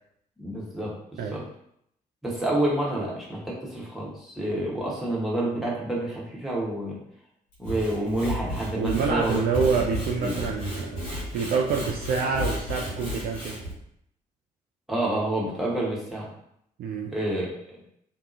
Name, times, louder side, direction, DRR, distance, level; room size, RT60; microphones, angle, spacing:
voice 1, 0.4-0.9 1.3-1.4 2.2-7.0 7.6-9.4 9.8-9.9 10.2-10.3 14.9-16.2 17.1-17.8, right 1 dB, ahead, -5 dB, 1.1 m, -28 dB
Sawing / Wood, 7.5-13.7, equal, 75° left, 1.1 m, -33 dB
voice 2, 8.7-11.0 11.3-13.6 16.8-17.1, right 5 dB, 50° right, 0 dB, 0.4 m, -27 dB
2.7 x 2.2 x 2.6 m, 0.74 s
figure-of-eight pair, 40°, 20 cm